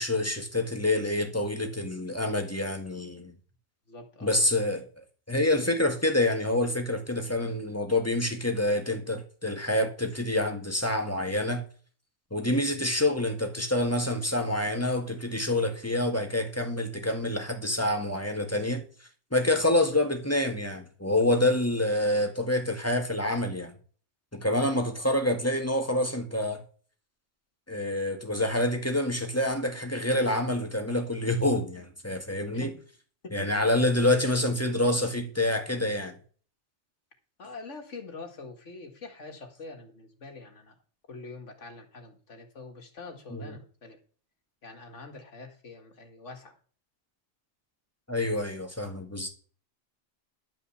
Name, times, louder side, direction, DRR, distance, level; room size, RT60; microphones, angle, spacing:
voice 1, 0.0-3.4 4.2-4.9 5.3-11.6 12.3-18.8 19.3-23.7 24.3-26.6 27.7-32.7 33.3-36.2 43.3-43.4 48.1-49.3, left 1 dB, 10° left, 1.7 m, -27 dB
voice 2, 3.9-4.4 32.5-32.8 33.2-33.7 34.0-34.5 37.4-40.8 41.1-44.0 44.6-46.6, left 3 dB, 85° left, 2.3 m, -44 dB
11.5 x 5.3 x 7.2 m
omnidirectional pair, 1.2 m